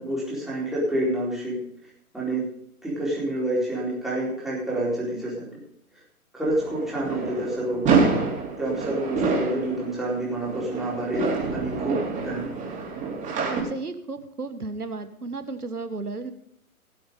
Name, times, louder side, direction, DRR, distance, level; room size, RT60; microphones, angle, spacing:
voice 1, 0.0-1.6 2.1-2.5 2.8-5.6 6.3-8.1 8.6-12.7, right 1 dB, ahead, -7 dB, 4.3 m, -28 dB
sound 1, 6.5-13.6, right 4 dB, 15° right, 3.9 m, -27 dB
voice 2, 13.5-16.3, right 3 dB, 85° right, 9 dB, 1.7 m, -33 dB
18.5 x 7.3 x 5.3 m, 0.69 s
figure-of-eight pair, 130°, 44 cm